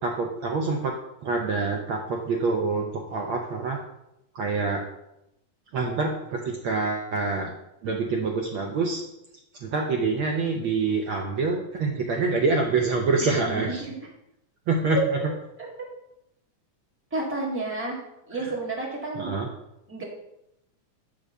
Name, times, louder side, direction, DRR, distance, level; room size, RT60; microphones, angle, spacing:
voice 1, 0.0-0.9 1.2-3.8 4.3-4.8 5.7-7.5 7.8-9.0 9.6-13.8 14.7-15.0 18.4-18.5 19.1-19.5, right 4 dB, 90° right, 1 dB, 1.1 m, -26 dB
voice 2, 13.2-13.9 14.9-15.0 17.1-19.3 19.9-20.0, right 1 dB, 5° right, -3 dB, 1.1 m, -31 dB
10.0 x 3.7 x 6.6 m, 0.85 s
omnidirectional pair, 3.5 m